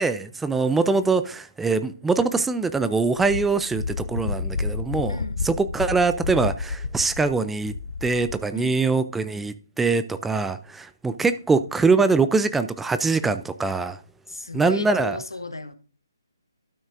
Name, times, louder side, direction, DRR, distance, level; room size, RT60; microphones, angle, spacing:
voice 1, 0.0-5.2 5.4-7.7 8.0-14.0 14.5-15.2, right 4 dB, 5° right, 0.3 m, -23 dB
Wind, 3.2-8.5, left 4 dB, 60° left, 0.5 m, -30 dB
voice 2, 5.1-5.4 8.5-8.8 14.3-15.7, left 2 dB, 85° left, 1.0 m, -34 dB
12.5 x 6.2 x 2.5 m
figure-of-eight pair, 140°, 2 cm